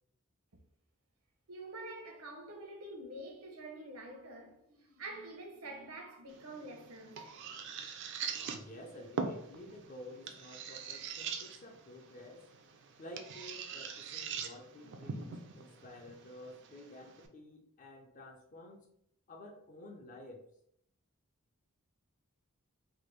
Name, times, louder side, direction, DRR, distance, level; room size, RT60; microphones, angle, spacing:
voice 1, 1.5-7.3, right 2 dB, 75° right, 0.7 m, -47 dB
sound 1, 6.3-17.3, right 5 dB, 55° right, 0.4 m, -43 dB
voice 2, 8.5-12.4 13.0-18.9 19.3-20.4, left 1 dB, 35° left, 0.4 m, -51 dB
3.4 x 2.2 x 3.1 m
head